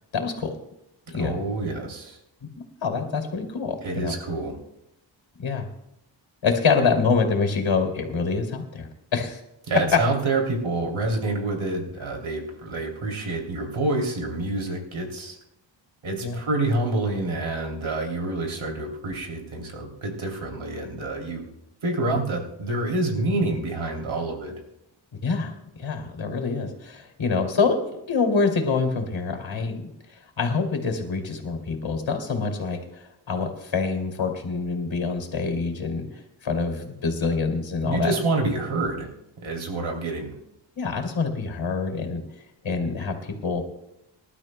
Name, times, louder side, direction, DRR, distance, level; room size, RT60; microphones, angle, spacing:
voice 1, 0.1-0.6 1.1-1.4 2.6-4.1 5.4-5.7 6.4-9.4 9.9-10.0 16.2-16.4 25.1-25.5 25.8-27.8 28.1-38.1 40.8-42.2 42.6-43.6, left 4 dB, 70° left, 4 dB, 2.8 m, -26 dB
voice 2, 1.2-2.2 3.8-4.6 9.7-15.4 16.0-21.5 21.8-24.5 37.8-39.1 39.4-40.4, right 2 dB, 85° right, 0 dB, 3.1 m, -27 dB
26.0 x 12.0 x 2.2 m, 0.85 s
cardioid pair, 70°, 47 cm